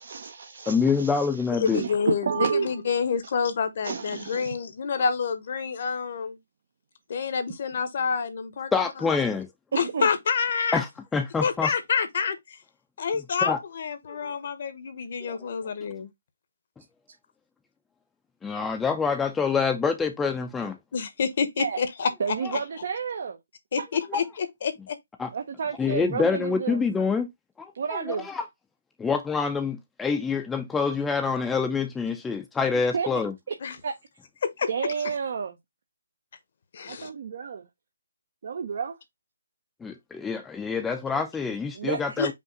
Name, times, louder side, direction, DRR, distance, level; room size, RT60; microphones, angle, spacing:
voice 1, 0.0-1.3 1.7-2.7 3.8-4.5 9.7-10.1 21.6-21.8 22.2-23.4 23.8-23.9 25.3-26.8 27.7-28.3 32.9-33.1 33.8-33.9 34.7-35.5 36.9-37.6 38.4-38.9 41.7-42.3, right 6 dB, 55° right, 0.7 m, -30 dB
voice 2, 0.7-1.8 8.7-9.5 10.7-11.7 13.4-13.6 14.1-14.4 15.2-15.5 18.4-20.8 22.4-22.5 24.1-24.2 25.2-25.3 25.8-27.3 27.6-28.5 29.0-33.3 39.8-42.3, left 5 dB, 5° left, 0.5 m, -26 dB
voice 3, 1.5-6.4 7.1-8.7 9.8-10.8 11.4-12.6 13.0-16.1 20.9-22.6 23.7-25.0 33.6-33.8 34.4-34.7 36.7-37.1 42.2-42.3, left 6 dB, 50° left, 1.0 m, -28 dB
5.4 x 2.6 x 3.8 m
hypercardioid pair, 155°, 0 cm